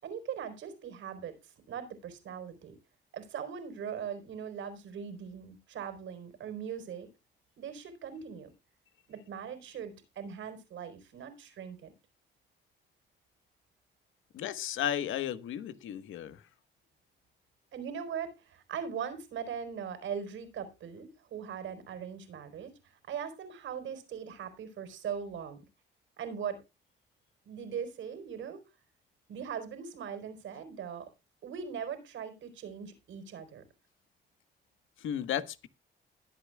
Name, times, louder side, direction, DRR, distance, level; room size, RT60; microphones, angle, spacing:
voice 1, 0.0-2.8 3.1-7.1 7.6-8.5 9.1-11.9 17.7-22.8 23.1-25.6 26.2-26.6 27.4-28.6 29.3-31.1 31.4-33.6, right 7 dB, 75° right, 4.5 m, -40 dB
voice 2, 14.3-16.4 35.0-35.7, left 10 dB, 80° left, 1.4 m, -34 dB
20.5 x 8.6 x 2.3 m
cardioid pair, 90°, 20 cm